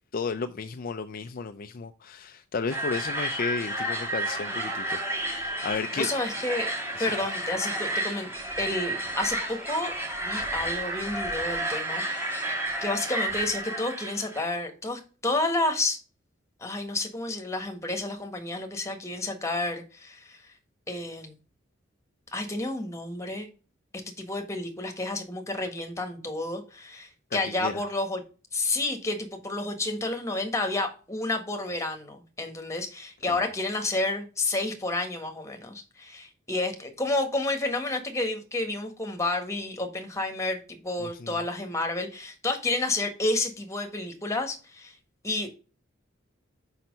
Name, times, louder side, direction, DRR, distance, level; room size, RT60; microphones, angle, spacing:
voice 1, 0.1-6.1 7.0-7.1 27.3-27.8 33.3-33.4 41.0-41.4, left 5 dB, 45° left, 0.4 m, -33 dB
sound 1, 2.7-14.4, right 1 dB, 10° right, 2.2 m, -31 dB
voice 2, 5.9-6.7 7.0-8.3 8.6-9.9 10.2-16.0 16.6-20.4 20.9-21.4 22.3-23.5 24.2-28.2 28.5-44.9 45.2-45.5, left 2 dB, 15° left, 1.5 m, -30 dB
6.0 x 5.6 x 5.3 m
head